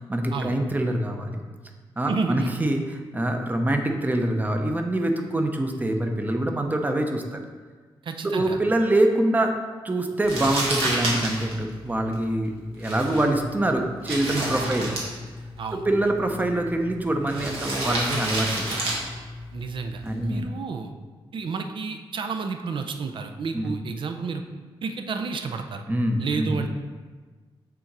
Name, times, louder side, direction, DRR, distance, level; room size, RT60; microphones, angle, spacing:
voice 1, 0.0-1.4 2.0-7.4 8.3-9.5 9.8-14.9 15.7-18.9 20.0-20.5 23.5-23.7 25.9-26.6, right 1 dB, 20° right, 4 dB, 0.7 m, -25 dB
voice 2, 2.1-2.5 8.0-8.6 14.6-14.7 15.6-15.8 19.5-20.9 21.3-24.4 24.8-25.8 26.2-26.7, right 4 dB, 60° right, 6 dB, 0.6 m, -31 dB
Crumpling crinkling, 10.2-20.4, right 1 dB, 85° right, 1.6 m, -31 dB
6.8 x 3.8 x 4.6 m, 1.4 s
cardioid pair, 95°, 9 cm